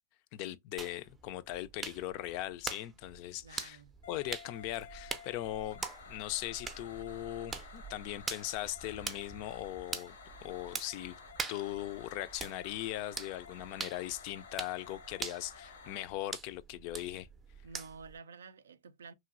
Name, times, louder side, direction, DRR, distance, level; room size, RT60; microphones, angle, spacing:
voice 1, 0.3-3.8 4.1-10.2 10.4-11.1 11.5-17.3, left 14 dB, 50° left, 0.3 m, -39 dB
sound 1, 0.8-18.2, right 4 dB, 15° right, 0.4 m, -45 dB
voice 2, 3.4-4.0 17.6-19.1, right 4 dB, 90° right, 0.3 m, -51 dB
sound 2, 4.0-16.0, left 6 dB, 85° left, 0.7 m, -53 dB
3.0 x 2.6 x 2.4 m
hypercardioid pair, 120°, 0 cm